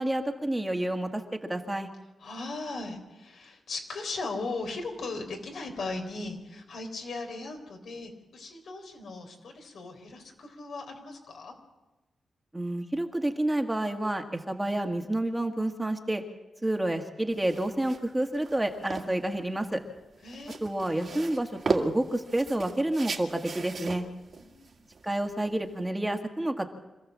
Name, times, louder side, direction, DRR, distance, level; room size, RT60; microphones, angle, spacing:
voice 1, 0.0-1.9 12.5-16.2 16.6-19.8 20.6-24.1 25.0-26.7, right 1 dB, 10° right, 4 dB, 1.8 m, -29 dB
voice 2, 2.2-11.5 20.2-20.8 24.3-24.9, left 3 dB, 75° left, 3 dB, 3.9 m, -38 dB
sound 1, 17.3-25.9, right 4 dB, 50° right, 2.1 m, -37 dB
26.0 x 14.5 x 7.5 m, 1.1 s
cardioid pair, 95°, 0 cm